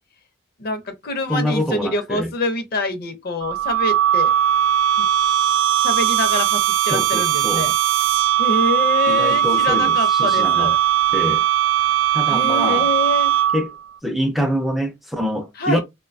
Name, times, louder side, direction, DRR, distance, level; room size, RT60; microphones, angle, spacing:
voice 1, 0.6-4.3 5.0-5.1 5.8-7.7 8.4-10.8 12.3-13.3 15.6-15.8, left 2 dB, 50° left, 0.6 m, -25 dB
voice 2, 1.3-2.3 6.9-7.7 9.1-10.7 11.1-11.4 12.1-12.9 13.5-13.7 14.0-15.8, equal, ahead, 0.4 m, -25 dB
sound 1, 3.4-13.8, right 11 dB, 80° right, 0.4 m, -19 dB
2.6 x 2.2 x 2.5 m
head